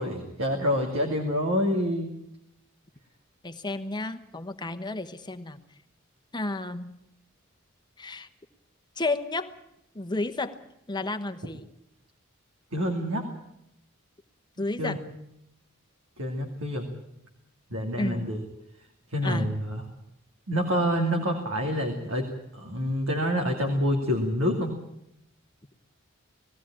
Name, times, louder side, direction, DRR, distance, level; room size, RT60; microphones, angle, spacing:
voice 1, 0.0-2.1 12.7-13.3 14.8-15.0 16.2-16.9 17.7-18.4 19.1-19.8 20.5-24.8, equal, 80° right, 2 dB, 2.6 m, -27 dB
voice 2, 3.4-5.6 6.3-6.9 8.0-8.3 9.0-9.5 9.9-10.6 10.9-11.7 14.6-15.0 18.0-18.3 19.2-19.5, left 2 dB, 20° left, 8 dB, 1.1 m, -32 dB
19.5 x 16.5 x 8.8 m, 0.78 s
head